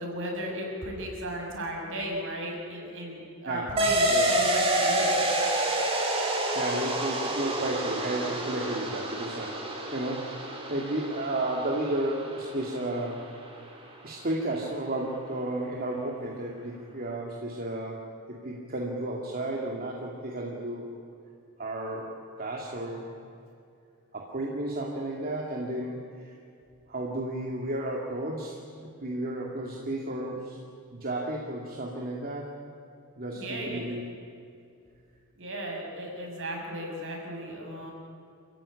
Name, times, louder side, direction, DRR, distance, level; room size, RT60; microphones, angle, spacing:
voice 1, 0.0-5.3 33.3-33.8 35.4-37.9, equal, 60° right, 0 dB, 6.3 m, -35 dB
sound 1, 3.8-12.8, right 1 dB, 25° right, 3.7 m, -28 dB
voice 2, 6.5-9.6 9.9-13.3 14.0-20.9 21.6-23.1 24.1-26.3 26.9-30.6 30.9-32.6 33.2-34.0, right 1 dB, 45° right, -1 dB, 2.4 m, -33 dB
27.5 x 15.5 x 9.9 m, 2.4 s
head